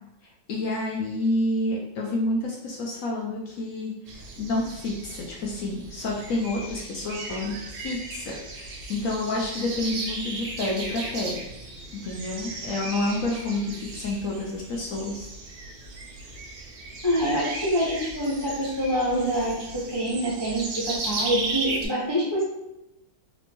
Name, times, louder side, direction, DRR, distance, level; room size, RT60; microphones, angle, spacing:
voice 1, 0.5-8.3 8.9-11.4 12.0-15.3, left 2 dB, 75° left, -2 dB, 0.8 m, -29 dB
sound 1, 4.1-21.9, right 3 dB, 70° right, 1.2 m, -36 dB
voice 2, 17.0-19.6 19.9-22.4, equal, 25° left, -7 dB, 0.5 m, -26 dB
4.2 x 2.1 x 2.9 m, 0.90 s
omnidirectional pair, 1.9 m